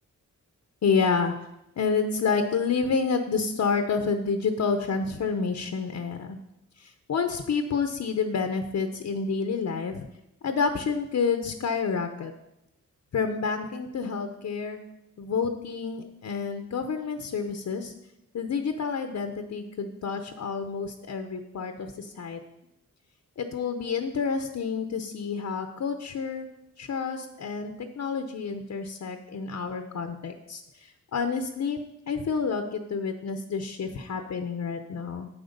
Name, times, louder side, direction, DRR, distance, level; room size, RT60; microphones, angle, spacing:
voice 1, 0.8-1.3 1.8-6.4 6.8-10.1 10.4-12.3 13.1-14.8 15.2-17.9 18.3-22.4 23.4-26.5 26.8-31.8 32.1-35.3, left 5 dB, 60° left, 7 dB, 0.8 m, -29 dB
7.9 x 7.7 x 5.2 m, 0.85 s
wide cardioid pair, 100°, 33 cm